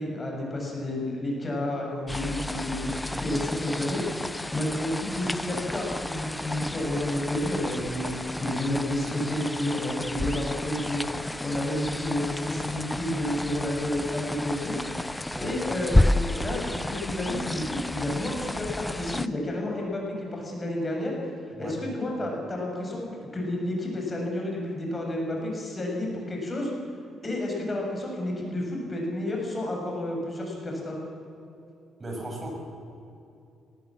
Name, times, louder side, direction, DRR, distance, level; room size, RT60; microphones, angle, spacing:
voice 1, 0.0-11.0 11.4-14.8 15.1-21.1 21.6-23.1 23.3-26.7 27.2-31.0, left 1 dB, 25° left, -1 dB, 6.8 m, -30 dB
sound 1, 2.1-19.3, left 1 dB, 10° left, 0.5 m, -31 dB
voice 2, 32.0-32.5, right 1 dB, 25° right, 0 dB, 6.9 m, -36 dB
19.5 x 18.5 x 7.6 m, 2.7 s
cardioid pair, 90°, 0 cm